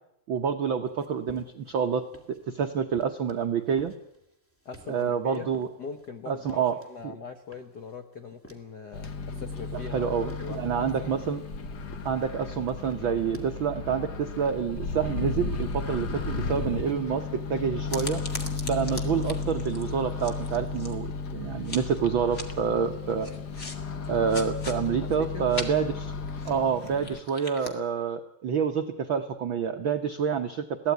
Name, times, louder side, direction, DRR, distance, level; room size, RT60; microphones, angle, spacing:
voice 1, 0.3-3.9 4.9-5.7 6.3-6.8 9.9-11.4 12.0-18.2 18.7-23.3 24.1-26.1 26.4-30.9, right 7 dB, 85° right, 6 dB, 1.0 m, -28 dB
sound 1, 0.8-2.5 2.9-7.1 7.4-9.1 9.3-13.6, right 1 dB, 5° left, 1.9 m, -51 dB
voice 2, 4.6-11.1 25.0-25.5, left 5 dB, 75° left, 7 dB, 0.9 m, -41 dB
Microwave oven, 8.9-27.2, left 4 dB, 55° left, 1.2 m, -34 dB
sound 2, 17.9-21.2 21.6-22.0 22.3-22.4 23.2-23.8 24.0-24.7 25.1-25.2 25.5-25.6 26.3-27.7, left 2 dB, 25° left, 1.9 m, -39 dB
22.5 x 16.5 x 9.3 m, 0.80 s
omnidirectional pair, 3.7 m